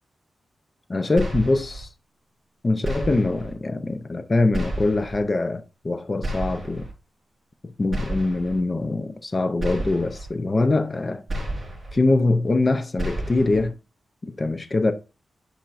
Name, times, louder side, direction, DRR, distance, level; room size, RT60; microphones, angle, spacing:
voice 1, 0.9-1.9 2.6-6.9 7.8-11.2 11.9-13.7 14.4-14.9, left 2 dB, 30° left, 0.5 m, -23 dB
sound 1, 1.2-1.8 2.8-3.5 4.5-5.2 6.2-6.9 7.9-8.6 9.6-10.3 11.3-12.0 13.0-13.7, right 1 dB, 20° right, 3.9 m, -31 dB
10.0 x 4.3 x 2.5 m
wide cardioid pair, 150°, 0 cm